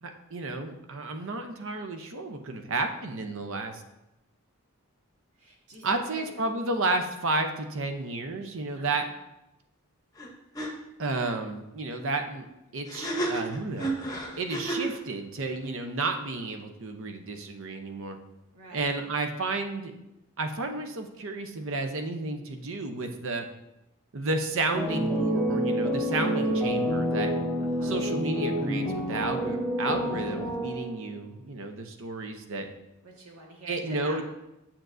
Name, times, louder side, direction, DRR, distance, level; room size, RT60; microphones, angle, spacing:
voice 1, 0.0-3.8 5.8-9.0 11.0-12.5 12.7-13.9 14.4-18.2 18.7-19.9 20.4-23.5 24.1-27.3 27.8-32.7 33.7-34.2, right 3 dB, 60° right, 6 dB, 0.7 m, -32 dB
voice 2, 5.4-6.2 8.7-9.1 18.5-18.9 27.6-28.0 33.0-34.2, right 1 dB, 75° right, -2 dB, 1.6 m, -45 dB
sound 1, 10.2-10.3 10.5-10.7 12.9-15.0, right 2 dB, 15° left, 0.8 m, -31 dB
sound 2, 24.7-31.2, equal, ahead, 1.2 m, -28 dB
7.4 x 7.0 x 2.6 m, 0.92 s
head